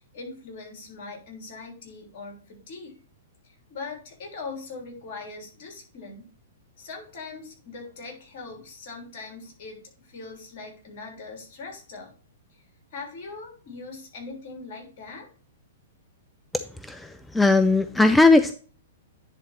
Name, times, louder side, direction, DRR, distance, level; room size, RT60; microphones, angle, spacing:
voice 1, 0.0-3.0 3.4-6.3 6.8-12.1 12.5-12.6 12.9-15.3, left 3 dB, 50° left, 2 dB, 3.3 m, -41 dB
voice 2, 16.9-18.5, left 3 dB, 5° left, 10 dB, 0.4 m, -18 dB
10.0 x 4.0 x 4.3 m, 0.40 s
figure-of-eight pair, 110°, 0 cm